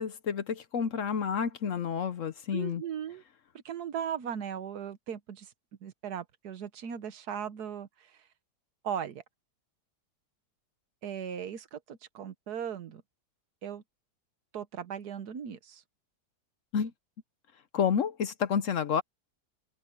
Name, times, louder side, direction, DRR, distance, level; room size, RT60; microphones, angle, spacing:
voice 1, 0.0-2.8 16.7-16.9 17.7-19.0, left 7 dB, 60° left, 1.0 m, -29 dB
voice 2, 2.5-3.2 3.6-5.5 5.8-8.2 8.8-9.2 11.0-13.0 13.6-13.8 14.5-15.8, right 8 dB, 75° right, 1.6 m, -38 dB
omnidirectional pair, 1.7 m